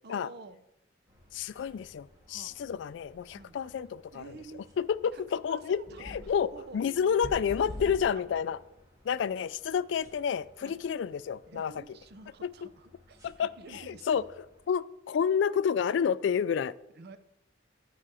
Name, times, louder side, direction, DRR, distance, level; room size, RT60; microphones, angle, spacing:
voice 1, 0.0-0.6 2.3-2.6 3.3-3.6 4.1-4.7 5.1-5.2 5.5-6.2 6.5-7.2 7.5-8.0 10.6-10.9 11.5-14.3 17.0-17.2, right 3 dB, 60° right, 11 dB, 0.6 m, -49 dB
sound 1, 1.1-14.7, left 1 dB, 20° right, 1.8 m, -50 dB
voice 2, 1.3-4.4 4.8-8.6 9.0-11.7 12.4-12.5 13.2-14.2 14.7-16.7, left 7 dB, 70° left, 18 dB, 0.3 m, -30 dB
10.0 x 4.9 x 4.8 m, 0.87 s
head